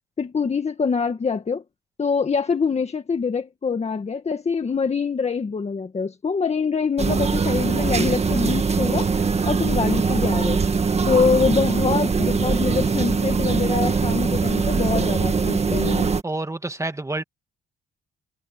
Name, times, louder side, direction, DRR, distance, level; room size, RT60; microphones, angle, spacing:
voice 1, 0.2-1.6 2.0-9.1 9.5-10.6 11.1-16.1, left 5 dB, 35° left, 1.9 m, -24 dB
sound 1, 7.0-16.2, right 5 dB, 30° right, 1.8 m, -22 dB
voice 2, 16.2-17.2, right 2 dB, 15° right, 2.2 m, -28 dB
cardioid pair, 90°, 20 cm